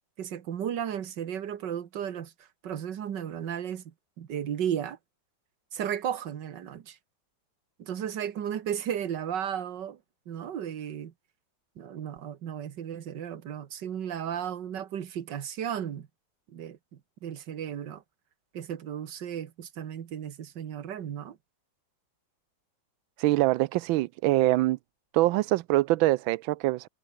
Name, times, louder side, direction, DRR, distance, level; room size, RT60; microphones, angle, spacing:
voice 1, 0.2-5.0 5.7-7.0 7.8-10.0 10.3-11.1 11.8-16.1 16.5-18.0 18.5-21.4, right 9 dB, 65° right, 1.9 m, -34 dB
voice 2, 23.2-24.8 25.1-26.9, right 17 dB, 85° right, 1.4 m, -24 dB
omnidirectional pair, 2.1 m